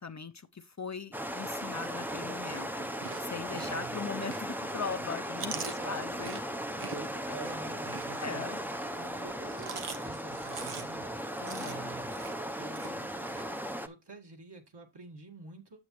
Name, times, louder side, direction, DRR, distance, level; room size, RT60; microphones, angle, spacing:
voice 1, 0.0-2.9 3.2-5.5 5.8-6.4 8.2-8.6 11.4-11.9, left 5 dB, 35° left, 0.6 m, -39 dB
sound 1, 1.1-13.9, equal, 5° right, 0.7 m, -37 dB
Chewing mastication, 2.8-4.7 5.1-8.6 9.3-13.4, right 6 dB, 90° right, 1.1 m, -44 dB
voice 2, 3.5-4.1 5.5-6.3 6.9-8.5 9.0-11.2 11.6-12.1 12.6-13.1 13.8-15.8, right 3 dB, 55° right, 2.0 m, -47 dB
8.5 x 7.3 x 3.1 m
wide cardioid pair, 65°, 50 cm